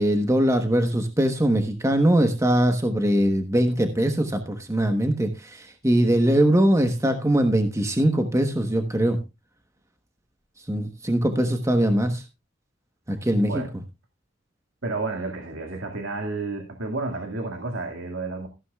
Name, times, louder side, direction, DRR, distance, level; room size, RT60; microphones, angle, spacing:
voice 1, 0.0-9.2 10.7-12.2 13.1-13.6, right 1 dB, 15° right, 6 dB, 1.2 m, -21 dB
voice 2, 14.8-18.5, right 3 dB, 85° right, 2 dB, 2.2 m, -31 dB
15.0 x 12.0 x 2.4 m, 0.25 s
head